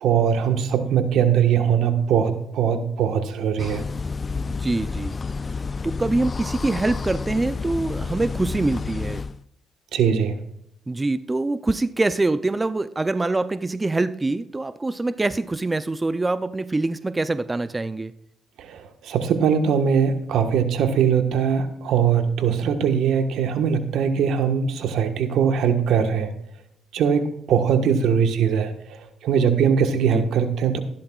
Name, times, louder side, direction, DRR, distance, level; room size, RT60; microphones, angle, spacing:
voice 1, 0.0-3.8 9.9-10.4 18.6-26.3 26.9-30.8, right 7 dB, 80° right, 1.4 m, -21 dB
sound 1, 3.6-9.4, left 4 dB, 35° left, 0.4 m, -30 dB
voice 2, 4.3-5.2 5.5-9.2 10.9-18.1 30.1-30.2, right 2 dB, 20° right, 0.5 m, -25 dB
14.5 x 11.5 x 2.4 m
cardioid pair, 90°, 0 cm